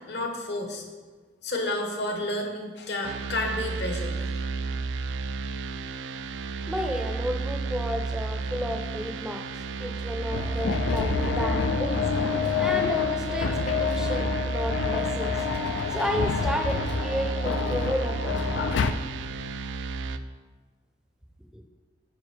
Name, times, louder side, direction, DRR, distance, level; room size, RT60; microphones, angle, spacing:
voice 1, 0.1-0.8 1.4-4.2, left 1 dB, 65° left, 3 dB, 1.1 m, -30 dB
sound 1, 3.0-20.2, right 4 dB, 80° right, 0.4 m, -32 dB
voice 2, 6.7-9.5 9.8-15.4 15.9-18.4, equal, 5° right, 3 dB, 0.5 m, -32 dB
sound 2, 10.3-18.9, left 6 dB, 85° left, 0.4 m, -28 dB
9.5 x 5.1 x 3.3 m, 1.4 s
head